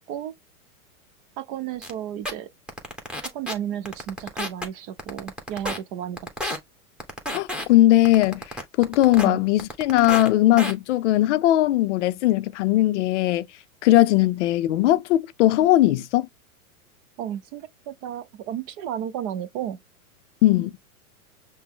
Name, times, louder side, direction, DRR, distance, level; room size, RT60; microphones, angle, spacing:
voice 1, 1.4-2.5 3.2-6.6 9.2-9.4 17.2-19.8, right 10 dB, 40° right, 0.7 m, -33 dB
sound 1, 1.8-1.9 2.3-2.4 2.7-3.5 3.9-4.7 5.0-5.8 6.2-6.6 7.0-7.7 8.1-9.3 9.6-10.3 10.6-10.7, left 1 dB, ahead, 1.1 m, -30 dB
voice 2, 7.3-8.4 8.8-13.5 13.8-16.3 20.4-20.7, left 15 dB, 55° left, 0.5 m, -19 dB
5.8 x 2.1 x 3.6 m
hypercardioid pair, 120°, 44 cm